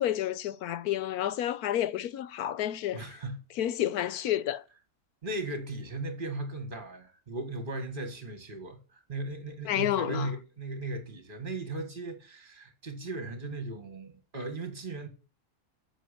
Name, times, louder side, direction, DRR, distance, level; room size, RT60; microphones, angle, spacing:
voice 1, 0.0-3.1 3.6-4.6 9.6-10.3, left 12 dB, 85° left, 1.2 m, -30 dB
voice 2, 2.9-3.4 5.2-15.1, right 2 dB, 35° right, 2.1 m, -37 dB
9.2 x 6.9 x 8.4 m
omnidirectional pair, 1.6 m